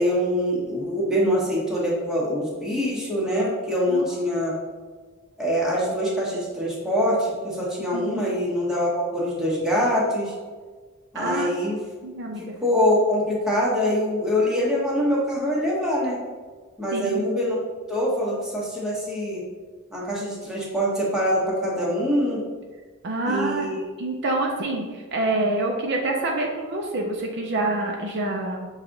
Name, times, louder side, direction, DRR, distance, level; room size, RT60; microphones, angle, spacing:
voice 1, 0.0-4.5 5.4-10.3 11.1-11.8 12.4-16.2 16.8-17.5 17.9-19.4 19.9-22.4 23.2-23.8, equal, 5° right, -6 dB, 1.1 m, -24 dB
voice 2, 7.9-8.2 11.1-11.5 12.0-12.6 16.9-17.2 23.0-23.7 24.0-28.7, right 2 dB, 55° right, 1 dB, 0.5 m, -27 dB
5.7 x 2.4 x 3.9 m, 1.4 s
head